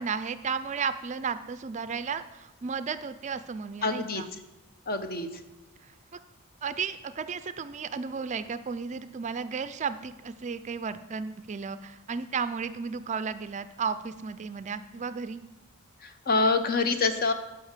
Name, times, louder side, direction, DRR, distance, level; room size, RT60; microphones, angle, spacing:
voice 1, 0.0-4.3 6.6-15.4, right 5 dB, 35° right, 13 dB, 0.4 m, -34 dB
voice 2, 3.8-4.2 4.9-5.3 16.3-17.3, left 3 dB, 45° left, 9 dB, 0.8 m, -25 dB
10.5 x 5.7 x 7.3 m, 1.1 s
head